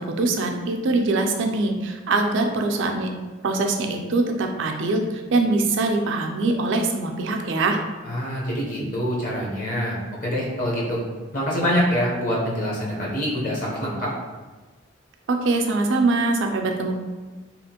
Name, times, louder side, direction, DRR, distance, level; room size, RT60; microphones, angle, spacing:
voice 1, 0.0-3.1 3.4-5.0 5.3-7.8 15.3-17.0, right 3 dB, 65° right, 4 dB, 0.4 m, -23 dB
voice 2, 8.1-11.0 11.3-14.1, equal, 40° left, -4 dB, 0.7 m, -25 dB
2.8 x 2.4 x 2.8 m, 1.3 s
head